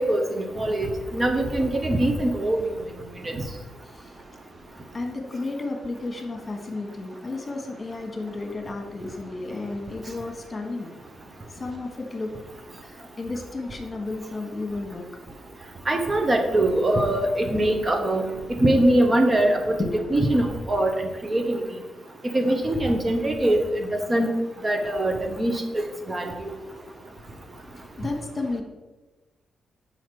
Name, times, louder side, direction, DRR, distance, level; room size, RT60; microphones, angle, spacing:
voice 1, 0.0-2.6 15.9-18.3 18.6-19.6 20.1-20.9 21.2-21.6 22.3-23.6 24.1-24.3 24.6-25.5 26.1-26.5, right 1 dB, 35° right, 4 dB, 1.1 m, -22 dB
voice 2, 4.9-10.9 11.5-12.3 12.8-15.0 19.8-20.0 28.0-28.6, left 2 dB, 35° left, 3 dB, 1.5 m, -32 dB
5.7 x 5.1 x 4.8 m, 1.2 s
supercardioid pair, 55°, 0 cm